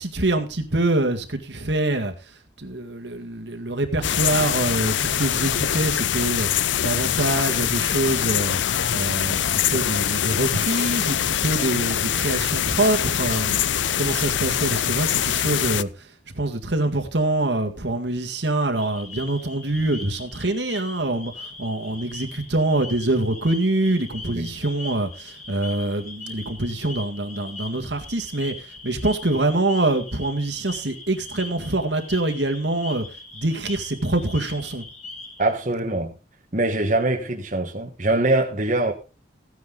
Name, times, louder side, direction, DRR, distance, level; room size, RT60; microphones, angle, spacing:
voice 1, 0.0-2.1 2.6-16.1 16.3-33.1 33.3-34.8, right 2 dB, 70° right, 1.9 m, -25 dB
sound 1, 4.0-15.8, left 10 dB, 80° left, 0.5 m, -23 dB
sound 2, 18.7-35.5, left 3 dB, 40° left, 5.0 m, -40 dB
voice 2, 35.4-36.1 36.5-38.9, right 2 dB, 40° right, 1.4 m, -23 dB
15.5 x 9.7 x 3.9 m
head